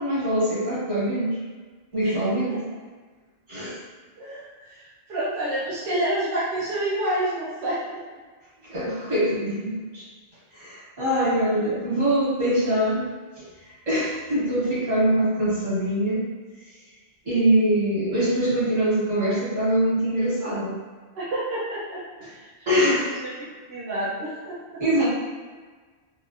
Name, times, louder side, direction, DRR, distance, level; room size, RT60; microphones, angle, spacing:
voice 1, 0.0-1.4 1.9-2.6 3.5-3.7 8.7-10.0 10.5-13.0 13.4-13.5 13.9-16.2 17.2-20.7 22.7-23.2 24.8-25.0, right 1 dB, 75° right, -10 dB, 1.9 m, -23 dB
voice 2, 4.2-8.0 21.1-24.8, right 1 dB, 60° right, -8 dB, 0.9 m, -29 dB
4.1 x 2.2 x 2.6 m, 1.4 s
omnidirectional pair, 1.1 m